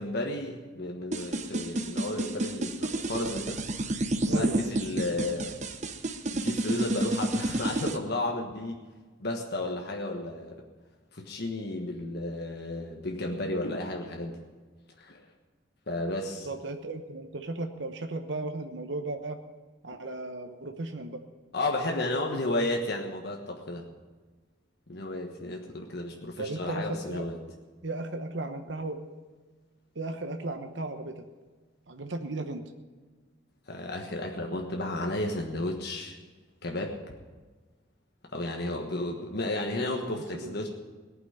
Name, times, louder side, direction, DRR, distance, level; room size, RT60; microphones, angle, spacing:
voice 1, 0.0-3.6 4.3-5.6 6.3-8.8 9.2-10.6 11.1-14.4 15.0-15.2 15.9-16.5 21.5-23.8 24.9-27.4 33.7-36.2 36.6-37.0 38.3-40.7, left 1 dB, 55° left, 1 dB, 1.4 m, -33 dB
sound 1, 1.1-8.0, right 1 dB, 40° right, 0.9 m, -30 dB
voice 2, 4.2-4.7 16.2-19.4 19.8-21.2 26.4-27.2 27.8-29.0 29.9-31.2 31.9-32.6 39.8-40.6, right 2 dB, 70° right, 6 dB, 1.0 m, -36 dB
18.0 x 6.1 x 9.8 m, 1.3 s
head